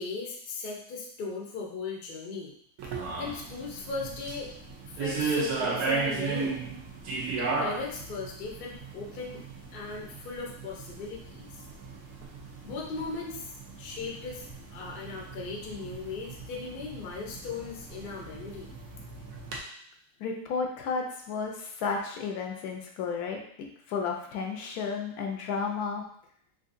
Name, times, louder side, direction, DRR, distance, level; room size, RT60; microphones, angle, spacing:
voice 1, 0.0-2.5 3.2-4.5 4.9-6.6 7.3-9.4 9.7-11.6 12.6-18.7, left 4 dB, 55° left, -1 dB, 0.6 m, -38 dB
sound 1, 2.8-19.6, right 4 dB, 75° right, 1.2 m, -36 dB
voice 2, 20.2-23.4 23.9-26.0, left 5 dB, 75° left, 1 dB, 1.0 m, -32 dB
3.7 x 2.7 x 2.5 m, 0.64 s
omnidirectional pair, 1.7 m